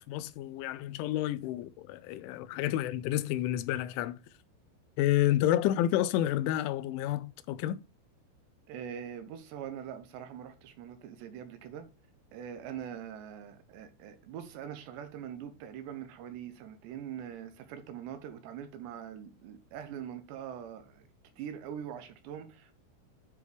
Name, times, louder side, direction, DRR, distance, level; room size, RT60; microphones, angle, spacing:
voice 1, 0.0-4.2 5.0-7.8, left 13 dB, 85° left, 3.0 m, -30 dB
voice 2, 8.7-11.9 12.3-21.1 21.4-22.8, right 9 dB, 75° right, 3.0 m, -43 dB
9.5 x 5.0 x 3.3 m
omnidirectional pair, 5.4 m